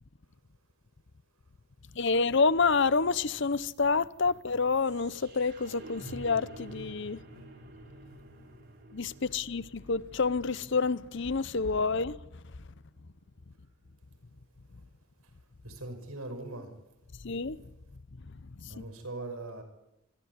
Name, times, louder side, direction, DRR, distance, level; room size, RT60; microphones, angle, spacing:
voice 1, 2.0-7.2 8.9-12.2 17.2-17.6 18.6-18.8, left 4 dB, 55° left, 0.8 m, -28 dB
sound 1, 3.7-13.7, right 1 dB, 50° right, 4.5 m, -51 dB
voice 2, 15.6-16.7 18.7-19.6, right 2 dB, 85° right, 5.8 m, -40 dB
24.5 x 14.5 x 9.7 m
head